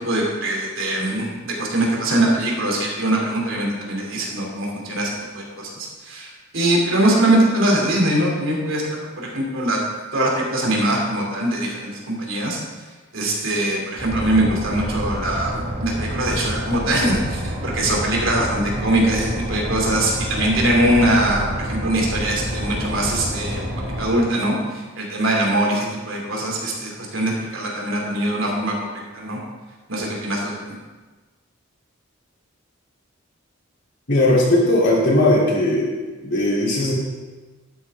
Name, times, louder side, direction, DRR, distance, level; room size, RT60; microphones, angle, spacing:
voice 1, 0.0-9.8 10.1-12.6 13.1-23.6 24.0-29.4 29.9-30.8, right 1 dB, 75° right, -1 dB, 2.8 m, -22 dB
sound 1, 14.0-24.2, equal, 55° right, 2.6 m, -28 dB
voice 2, 34.1-35.9 36.2-36.9, left 1 dB, 55° left, -5 dB, 3.3 m, -18 dB
11.5 x 9.8 x 3.7 m, 1.3 s
head